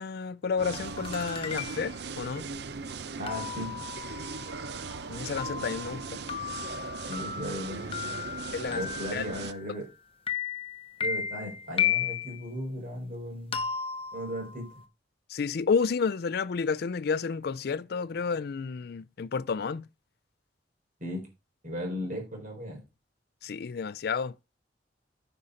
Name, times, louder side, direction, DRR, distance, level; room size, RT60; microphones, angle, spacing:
voice 1, 0.0-2.5 5.1-6.2 8.5-8.8 9.1-9.2 15.3-19.9 23.4-24.4, left 5 dB, 60° left, 0.4 m, -31 dB
sound 1, 0.6-9.5, right 5 dB, 65° right, 0.6 m, -39 dB
sound 2, 0.7-2.0 3.3-9.9 10.3-12.4 13.5-14.8, left 8 dB, 30° left, 0.9 m, -35 dB
voice 2, 3.2-3.8 7.1-8.2 8.7-9.9 11.0-13.6 14.1-14.7 21.0-21.3 21.6-22.8, equal, 45° right, 4.3 m, -36 dB
9.6 x 5.5 x 5.0 m
head